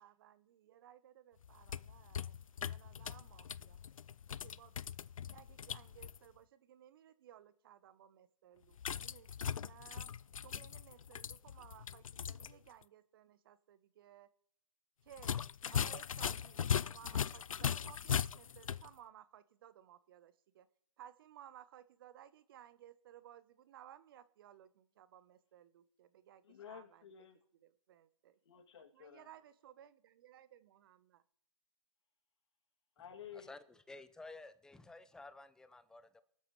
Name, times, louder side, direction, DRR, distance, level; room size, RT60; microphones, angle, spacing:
voice 1, 0.0-2.3 2.7-3.8 4.3-5.0 5.2-10.1 10.4-14.3 15.0-20.7 21.0-27.1 27.5-28.4 28.8-31.2, right 11 dB, 40° right, 15 dB, 1.0 m, -59 dB
sound 1, 1.4-6.2 8.8-12.5 12.8-12.9 15.1-18.9, left 8 dB, 70° left, 0.5 m, -39 dB
voice 2, 26.4-27.4 28.4-29.3 33.0-33.5, left 8 dB, 50° left, 4 dB, 2.6 m, -53 dB
voice 3, 33.9-36.2, left 3 dB, 5° left, 14 dB, 0.6 m, -53 dB
23.5 x 12.5 x 3.2 m, 0.68 s
figure-of-eight pair, 135°, 18 cm